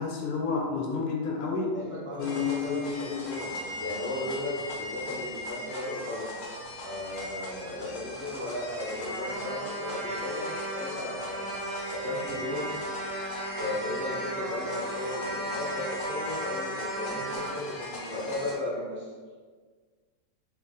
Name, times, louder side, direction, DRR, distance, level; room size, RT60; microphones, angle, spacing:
voice 1, 0.0-1.8 2.2-3.2, left 5 dB, 85° left, 0 dB, 1.1 m, -30 dB
voice 2, 1.7-6.3 6.8-11.5 11.9-12.8 13.6-19.1, left 1 dB, 10° left, -8 dB, 0.6 m, -36 dB
sound 1, 2.2-18.5, left 1 dB, 50° left, 0.9 m, -39 dB
Trumpet, 9.0-17.6, right 1 dB, 60° right, 0.6 m, -36 dB
4.0 x 2.7 x 3.6 m, 1.5 s
omnidirectional pair, 1.6 m